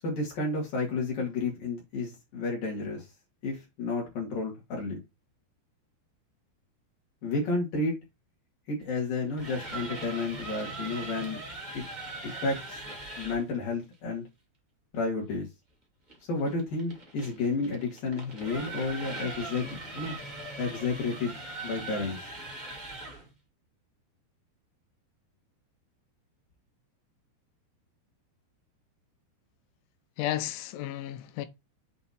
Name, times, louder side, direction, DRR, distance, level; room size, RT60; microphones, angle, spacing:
voice 1, 0.0-3.1 3.4-5.0 7.2-7.9 8.7-11.4 11.7-11.8 12.4-12.8 13.2-14.2 14.9-15.5 16.3-20.2 20.6-22.2, left 3 dB, 55° left, 3.5 m, -31 dB
sound 1, 9.2-13.5 16.1-23.3, right 2 dB, 50° right, 0.5 m, -40 dB
voice 2, 30.2-31.5, left 13 dB, 90° left, 3.2 m, -33 dB
8.1 x 3.5 x 4.2 m
omnidirectional pair, 5.2 m